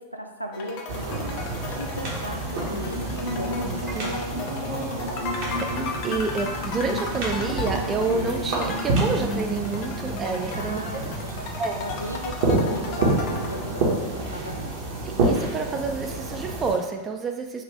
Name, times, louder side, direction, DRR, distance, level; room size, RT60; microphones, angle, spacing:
voice 1, 0.0-4.7 5.0-5.2 10.5-14.7, equal, 90° right, 2 dB, 0.4 m, -37 dB
sound 1, 0.5-14.2, left 4 dB, 45° left, 0.6 m, -37 dB
sound 2, 0.9-16.8, right 2 dB, 50° right, 1.1 m, -29 dB
Singing / Musical instrument, 2.3-12.4, equal, 75° left, 1.2 m, -34 dB
voice 2, 3.6-4.0 5.6-11.0 11.6-11.8 15.0-17.6, right 4 dB, 25° right, 4 dB, 0.5 m, -29 dB
4.1 x 2.6 x 4.7 m, 1.1 s
figure-of-eight pair, 90°, 0 cm